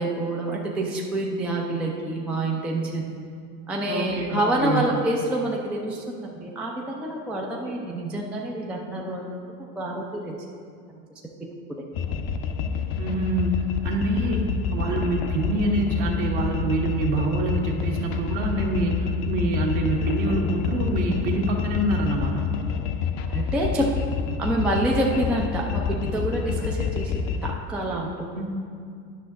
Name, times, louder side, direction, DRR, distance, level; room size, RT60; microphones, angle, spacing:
voice 1, 0.0-3.3 3.7-9.3 9.8-10.4 11.4-11.5 23.3-23.9 24.4-28.4, right 1 dB, 5° right, -2 dB, 0.3 m, -27 dB
voice 2, 3.9-4.8 13.0-22.5 28.3-28.4, right 2 dB, 55° right, 0 dB, 1.5 m, -26 dB
sound 1, 11.9-27.5, left 6 dB, 45° left, 0.6 m, -28 dB
10.5 x 5.7 x 3.6 m, 2.3 s
hypercardioid pair, 95°, 50 cm